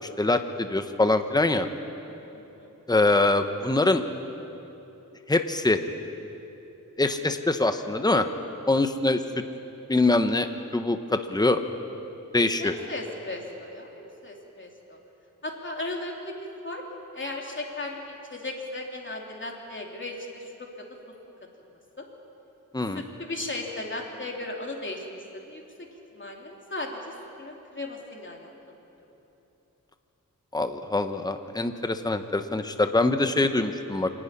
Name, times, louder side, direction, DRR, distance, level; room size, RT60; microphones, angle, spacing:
voice 1, 0.2-1.7 2.9-4.0 5.3-5.8 7.0-8.3 8.7-9.2 9.9-10.5 10.7-11.6 12.3-12.7 22.7-23.0 30.5-34.1, left 2 dB, 10° left, 8 dB, 1.0 m, -23 dB
voice 2, 12.6-15.0 15.4-16.3 16.6-16.8 17.1-20.9 22.0-22.1 22.8-25.1 25.3-25.6 26.1-28.5 33.1-33.2, left 2 dB, 35° left, 0 dB, 3.1 m, -36 dB
26.5 x 11.5 x 9.8 m, 3.0 s
wide cardioid pair, 85°, 33 cm